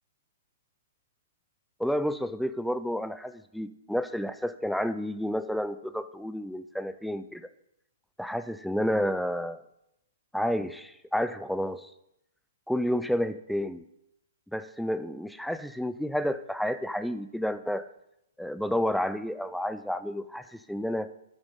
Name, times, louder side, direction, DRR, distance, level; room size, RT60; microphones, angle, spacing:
voice 1, 1.8-7.5 8.2-9.6 10.3-11.9 12.7-13.8 14.5-17.9 18.4-21.1, equal, ahead, 12 dB, 0.3 m, -30 dB
9.8 x 9.0 x 5.3 m, 0.82 s
hypercardioid pair, 170°, 0 cm